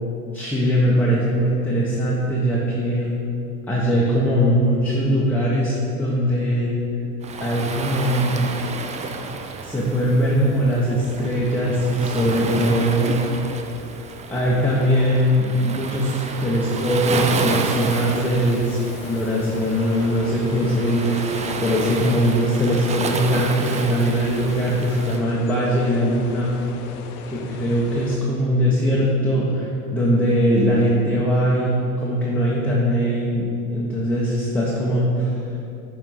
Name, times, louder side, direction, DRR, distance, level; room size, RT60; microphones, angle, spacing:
voice 1, 0.3-3.1 3.7-6.8 7.4-8.5 9.6-13.6 14.3-18.8 19.1-26.5 27.2-35.3, equal, 5° left, -6 dB, 1.1 m, -21 dB
Waves surf, 7.2-25.2, right 4 dB, 15° right, 0.3 m, -30 dB
sound 1, 17.8-28.2, left 5 dB, 75° left, 0.7 m, -38 dB
7.5 x 3.7 x 5.6 m, 2.8 s
hypercardioid pair, 80°, 45 cm